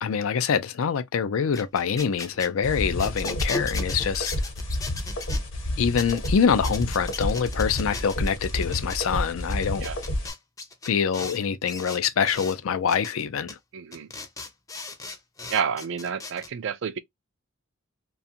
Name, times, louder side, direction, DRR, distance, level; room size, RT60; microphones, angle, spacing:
voice 1, 0.0-4.3 5.8-9.9 10.9-13.6, left 6 dB, 75° left, 0.4 m, -25 dB
sound 1, 1.4-5.4 5.9-6.3 6.6-9.0 9.4-11.4 11.7-12.6 12.9-13.1 13.5-13.6 13.9-16.5, left 3 dB, 15° left, 0.4 m, -37 dB
sound 2, 2.6-10.3, left 1 dB, 60° left, 1.0 m, -30 dB
voice 2, 13.7-14.1 15.5-17.0, right 7 dB, 60° right, 0.4 m, -29 dB
2.5 x 2.3 x 2.7 m
head